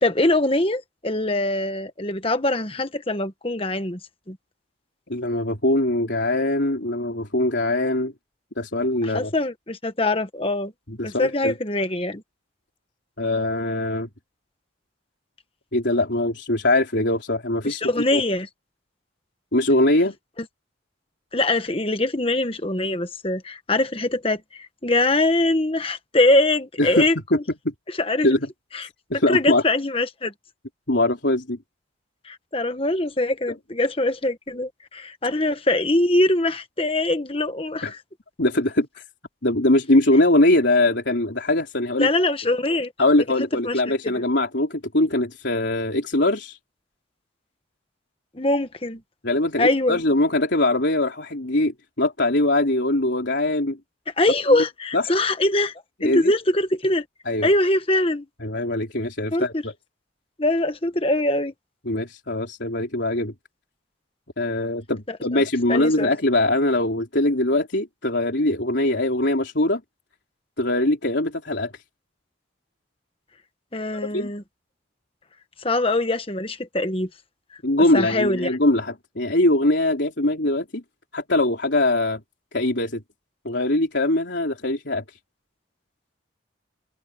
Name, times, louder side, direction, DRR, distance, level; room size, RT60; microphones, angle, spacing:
voice 1, 0.0-4.0 4.3-4.4 9.0-10.7 11.0-12.2 17.6-18.5 20.4-20.5 21.3-27.4 27.9-28.3 28.7-28.9 29.3-30.3 32.2-37.9 42.0-42.9 43.6-43.7 48.3-49.0 49.6-50.0 54.2-55.7 56.0-57.0 57.4-58.3 59.3-59.6 60.4-61.5 65.1-65.4 65.7-66.1 73.7-74.4 75.6-77.1 77.9-78.6, left 2 dB, 30° left, 1.5 m, -23 dB
voice 2, 5.1-8.1 8.6-9.3 10.9-11.5 13.2-14.1 15.7-17.8 18.1-18.2 19.5-20.2 26.8-27.4 27.6-27.7 28.2-28.4 28.8-29.6 30.9-31.6 37.8-37.9 38.4-38.9 39.4-42.1 43.0-46.6 49.2-53.8 54.5-54.6 54.9-55.0 56.0-56.3 57.3-57.5 58.4-59.7 61.9-63.3 64.4-69.8 70.6-71.7 74.1-74.3 77.6-80.8 81.1-82.2 82.5-83.0 83.5-85.0, left 1 dB, 65° left, 3.6 m, -22 dB
head